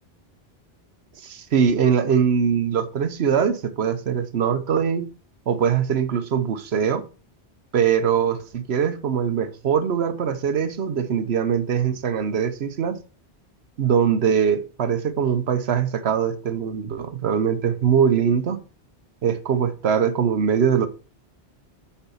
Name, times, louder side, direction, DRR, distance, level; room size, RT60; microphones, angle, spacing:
voice 1, 1.2-5.1 5.5-7.0 7.7-13.0 13.8-18.6 19.2-20.9, right 7 dB, 75° right, 1.0 m, -22 dB
8.5 x 4.5 x 5.4 m
omnidirectional pair, 1.1 m